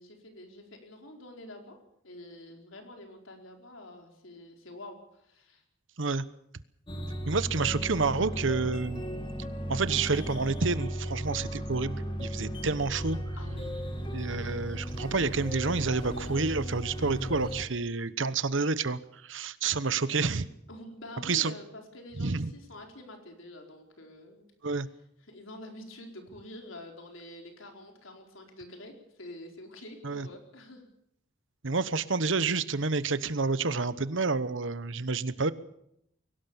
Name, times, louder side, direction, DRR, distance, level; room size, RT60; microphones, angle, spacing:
voice 1, 0.0-1.8 2.0-5.6 13.4-13.8 20.7-24.5 24.8-24.9 25.2-30.8, left 1 dB, 85° left, 3 dB, 4.6 m, -47 dB
sound 1, 6.9-17.6, equal, 25° left, 2.6 m, -35 dB
voice 2, 7.3-9.0 9.7-13.2 14.1-19.0 19.2-20.5 21.2-21.5 22.2-22.5 24.6-24.9 30.0-30.3 31.6-35.5, right 4 dB, 75° right, 15 dB, 1.1 m, -29 dB
22.5 x 18.0 x 7.2 m, 0.76 s
head